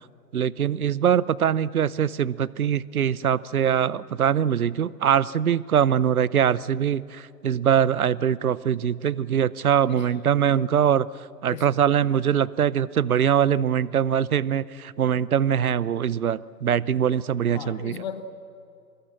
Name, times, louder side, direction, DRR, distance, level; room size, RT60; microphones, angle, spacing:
voice 1, 0.3-11.1 11.4-18.0, right 9 dB, 60° right, 21 dB, 0.8 m, -23 dB
voice 2, 11.5-11.8 17.5-18.2, left 9 dB, 25° left, 10 dB, 1.3 m, -37 dB
24.5 x 22.5 x 7.6 m, 2.6 s
figure-of-eight pair, 140°, 50 cm